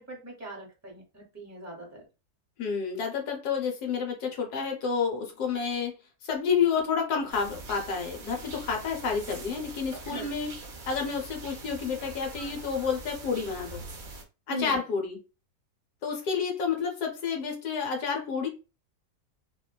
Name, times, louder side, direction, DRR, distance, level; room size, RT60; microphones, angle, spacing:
voice 1, 0.0-2.0 10.0-10.3 14.5-14.8, equal, 15° right, 0.7 m, -39 dB
voice 2, 2.6-5.9 6.2-10.5 10.9-13.8 14.5-15.2 16.0-18.5, left 6 dB, 75° left, 1.3 m, -29 dB
sound 1, 7.3-14.2, right 2 dB, 80° right, 0.4 m, -43 dB
3.0 x 2.2 x 2.3 m
omnidirectional pair, 1.7 m